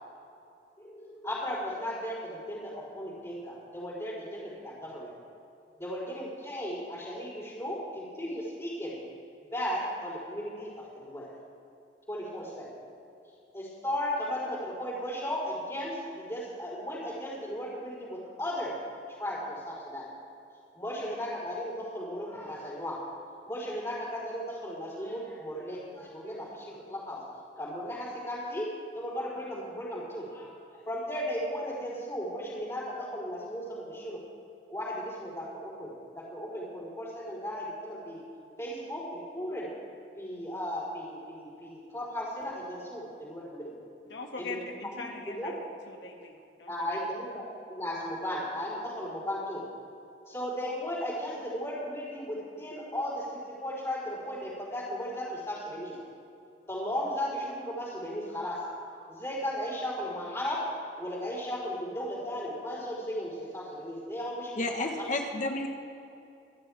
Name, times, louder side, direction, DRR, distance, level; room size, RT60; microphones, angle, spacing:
voice 1, 0.8-5.1 5.8-9.0 9.5-11.3 12.1-12.8 13.5-18.8 19.2-20.1 20.7-23.0 23.5-27.2 27.6-28.7 28.9-34.2 34.7-38.2 38.6-39.7 40.2-43.7 44.4-44.6 44.8-45.5 46.7-47.4 47.7-49.6 50.3-56.0 56.7-60.6 61.0-64.9, equal, 20° left, -11 dB, 4.1 m, -36 dB
voice 2, 44.1-46.3 46.6-46.9, left 3 dB, 80° left, 1 dB, 2.1 m, -42 dB
voice 3, 64.6-65.7, left 2 dB, 45° left, 3 dB, 1.3 m, -31 dB
27.0 x 11.5 x 3.5 m, 2.7 s
head